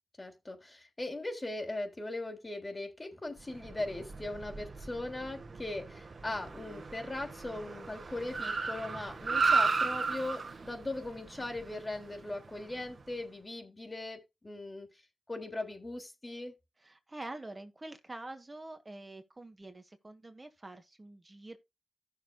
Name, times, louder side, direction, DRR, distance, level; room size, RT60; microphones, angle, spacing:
voice 1, 0.2-14.9 15.3-16.5, left 2 dB, 35° left, 3.2 m, -39 dB
Car, 3.5-13.0, right 4 dB, 65° right, 1.5 m, -35 dB
voice 2, 16.8-21.6, right 2 dB, 35° right, 1.5 m, -46 dB
15.0 x 6.8 x 2.3 m
cardioid pair, 50°, 0 cm